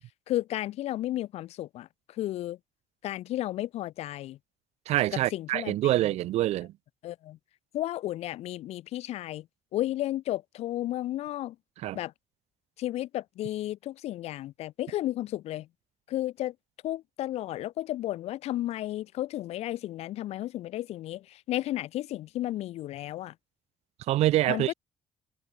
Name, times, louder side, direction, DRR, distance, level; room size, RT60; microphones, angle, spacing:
voice 1, 0.3-1.9 2.2-2.6 3.0-4.4 5.1-6.0 7.0-7.4 7.7-9.5 9.7-11.6 11.9-12.1 12.8-15.7 16.1-16.5 16.8-23.3 24.5-24.7, left 14 dB, 75° left, 0.7 m, -33 dB
voice 2, 4.9-6.7 11.8-12.0 24.1-24.7, right 15 dB, 85° right, 1.2 m, -26 dB
cardioid pair, 150°, 11 cm